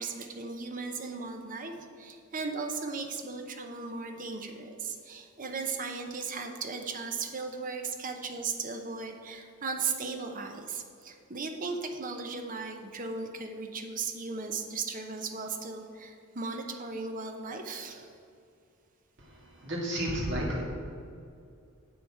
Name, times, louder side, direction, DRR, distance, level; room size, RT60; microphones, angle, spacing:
voice 1, 0.0-18.2, right 4 dB, 40° right, 4 dB, 0.8 m, -37 dB
voice 2, 19.2-20.6, equal, 55° right, -3 dB, 2.1 m, -32 dB
8.1 x 7.1 x 4.8 m, 2.4 s
head